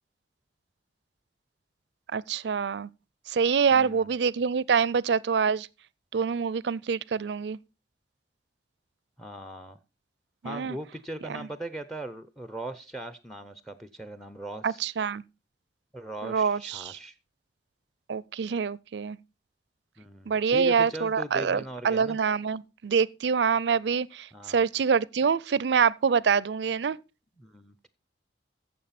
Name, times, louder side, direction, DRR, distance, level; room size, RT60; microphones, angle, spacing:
voice 1, 2.1-2.9 3.3-5.7 6.1-7.6 10.4-10.8 11.3-11.4 14.6-15.2 16.2-17.0 18.1-19.2 20.3-27.0, right 6 dB, 70° right, 0.4 m, -26 dB
voice 2, 3.7-4.1 9.2-9.8 10.4-14.9 15.9-17.2 20.0-22.2 24.3-24.6 27.4-27.9, right 1 dB, ahead, 0.6 m, -39 dB
14.5 x 7.3 x 4.2 m
head